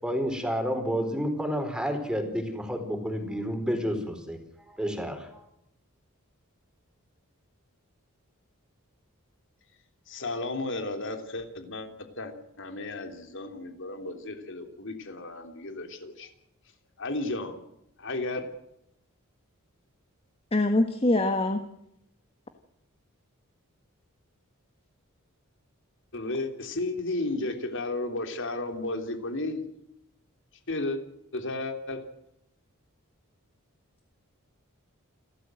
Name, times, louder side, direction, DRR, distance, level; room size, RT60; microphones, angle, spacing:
voice 1, 0.0-4.4 4.7-5.4, equal, 5° right, 6 dB, 4.5 m, -30 dB
voice 2, 10.1-11.9 12.2-16.3 17.0-17.6 18.0-18.5 26.1-29.6 30.7-31.0 31.3-32.1, left 2 dB, 60° left, 6 dB, 3.5 m, -33 dB
voice 3, 20.5-21.6, left 2 dB, 25° left, 7 dB, 1.5 m, -23 dB
28.5 x 13.5 x 7.8 m, 0.79 s
head